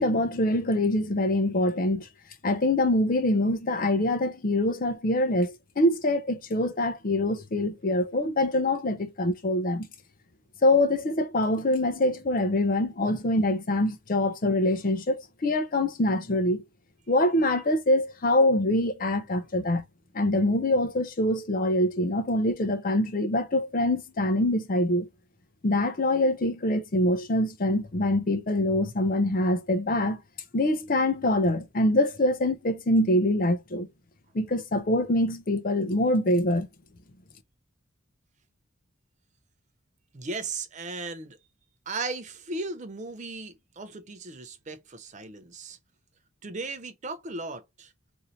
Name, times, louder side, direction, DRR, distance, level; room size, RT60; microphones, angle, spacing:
voice 1, 0.0-2.1 2.4-9.9 10.6-16.6 17.1-19.9 20.1-25.1 25.6-30.2 30.5-33.9 34.3-36.7, left 1 dB, 40° left, 0.5 m, -24 dB
voice 2, 40.1-41.4 41.9-45.8 46.4-47.9, right 3 dB, 35° right, 0.5 m, -36 dB
2.6 x 2.6 x 4.2 m
head